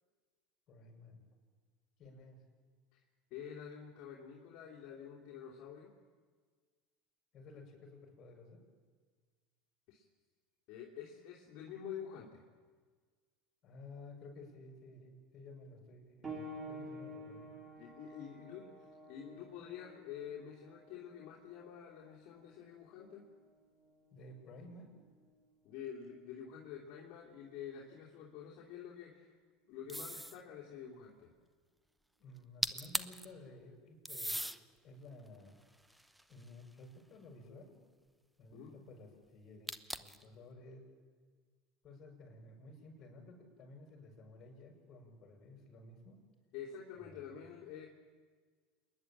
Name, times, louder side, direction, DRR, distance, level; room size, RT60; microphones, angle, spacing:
voice 1, 0.7-1.2 2.0-2.4 7.3-8.6 13.6-17.5 24.1-24.9 32.2-34.4 34.8-35.6 36.3-37.8 38.4-40.9 41.8-46.2 47.0-47.2, left 2 dB, 45° left, 2 dB, 7.0 m, -54 dB
voice 2, 3.3-5.9 9.9-10.0 10.7-12.4 17.8-18.7 19.1-23.2 25.6-29.4 29.7-31.3 38.5-38.7 46.5-47.9, left 8 dB, 60° left, -4 dB, 3.2 m, -48 dB
sound 1, 16.2-26.5 27.4-27.5 28.3-28.4, right 1 dB, 25° right, 4.0 m, -52 dB
sound 2, 29.9-30.4 32.4-32.5 32.6-33.2 34.0-34.6 35.3-36.7 39.7-40.2, right 1 dB, 5° right, 0.8 m, -39 dB
28.0 x 11.0 x 8.8 m, 1.6 s
hypercardioid pair, 95°, 0 cm